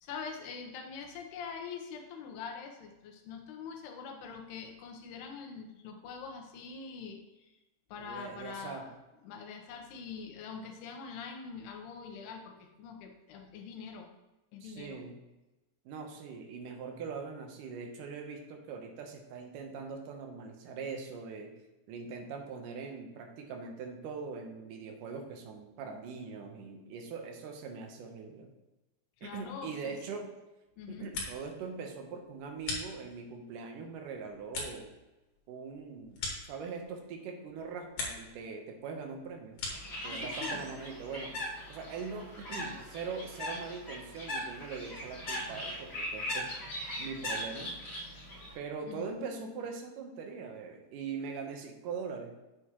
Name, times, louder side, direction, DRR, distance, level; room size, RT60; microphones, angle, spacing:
voice 1, 0.0-7.6 7.9-8.9 9.2-14.1 14.5-15.0 29.2-30.0 30.8-31.1 40.0-40.7 48.9-49.7, left 6 dB, 80° left, 3 dB, 2.9 m, -44 dB
voice 2, 8.0-8.9 14.6-15.2 15.9-21.5 21.9-28.5 29.2-30.3 30.9-34.9 35.5-39.6 40.0-41.4 41.7-46.5 47.0-47.7 48.6-52.4, right 5 dB, 70° right, 3 dB, 2.2 m, -42 dB
Light Switch, 30.8-31.6 31.9-33.4 33.8-37.1 37.4-38.4 38.7-40.0, left 3 dB, 60° left, 3.2 m, -42 dB
Bird, 39.7-48.5, left 1 dB, 40° left, 1.9 m, -39 dB
8.2 x 7.0 x 3.0 m, 1.0 s
omnidirectional pair, 4.7 m